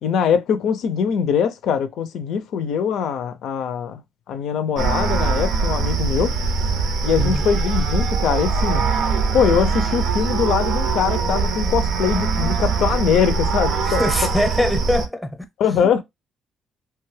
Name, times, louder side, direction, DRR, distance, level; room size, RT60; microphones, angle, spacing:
voice 1, 0.0-4.0 4.3-6.3 7.0-8.9 9.3-14.0 15.6-16.0, left 7 dB, 80° left, 0.5 m, -22 dB
sound 1, 4.8-15.1, right 5 dB, 75° right, 0.5 m, -22 dB
voice 2, 7.2-7.5 13.8-15.4 15.6-15.9, left 1 dB, 5° left, 0.7 m, -23 dB
2.9 x 2.3 x 3.1 m
cardioid pair, 90°, 0 cm